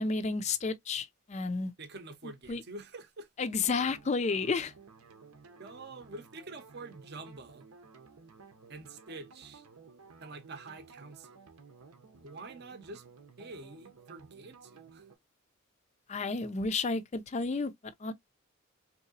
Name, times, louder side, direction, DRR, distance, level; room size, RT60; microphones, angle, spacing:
voice 1, 0.0-1.7 2.5-2.6 3.4-4.7 16.1-17.7 18.0-18.1, left 4 dB, 30° left, 0.4 m, -31 dB
voice 2, 1.8-3.3 5.6-7.7 8.7-9.7 10.2-11.4 12.2-13.0 13.4-15.1, right 2 dB, 50° right, 0.6 m, -46 dB
sound 1, 3.5-15.2, right 5 dB, 90° right, 0.7 m, -55 dB
3.6 x 2.8 x 2.7 m
head